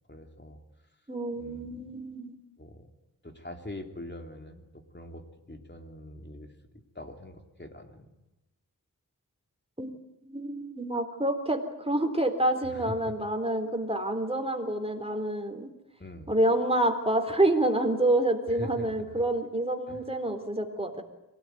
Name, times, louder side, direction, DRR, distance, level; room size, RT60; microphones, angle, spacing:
voice 1, 0.1-0.6 1.4-1.8 2.6-2.9 3.2-8.1 12.6-13.2 16.0-16.3 18.5-19.2 19.9-20.2, left 1 dB, 30° left, 4 dB, 3.4 m, -43 dB
voice 2, 1.1-2.4 9.8-10.0 10.3-15.7 16.3-21.0, right 1 dB, 15° right, 5 dB, 3.9 m, -28 dB
24.5 x 18.0 x 9.4 m, 0.99 s
wide cardioid pair, 65°, 35 cm